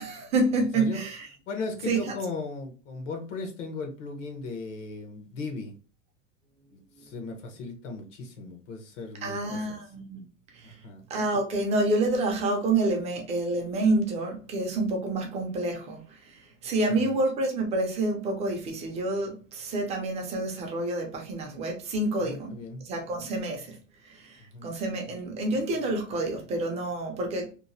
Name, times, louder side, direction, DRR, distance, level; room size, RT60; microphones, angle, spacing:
voice 1, 0.0-1.3 1.9-2.1 7.0-7.1 9.2-10.2 10.5-10.8 11.1-23.8 24.0-27.5, right 2 dB, 15° right, 0.5 m, -28 dB
voice 2, 1.5-5.7 6.7-9.8 10.6-11.0 16.9-17.1 22.2-22.8 24.5-24.7, left 3 dB, 70° left, 1.0 m, -37 dB
2.9 x 2.0 x 2.6 m
supercardioid pair, 150°, 38 cm